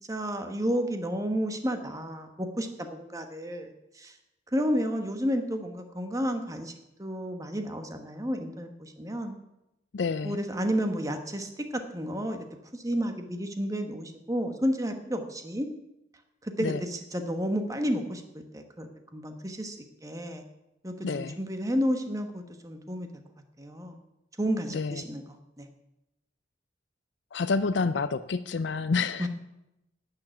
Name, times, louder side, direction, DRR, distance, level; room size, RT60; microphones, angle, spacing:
voice 1, 0.1-4.1 4.5-6.7 7.0-9.4 10.2-12.5 12.7-15.7 16.4-19.8 20.0-20.4 20.8-23.1 23.6-24.0 24.4-25.2 25.6-25.7 29.2-29.3, equal, 20° right, 6 dB, 1.2 m, -31 dB
voice 2, 9.9-10.4 16.6-16.8 21.0-21.4 24.7-25.0 27.3-29.3, left 4 dB, 65° left, 11 dB, 0.5 m, -28 dB
11.5 x 6.9 x 9.1 m, 0.91 s
head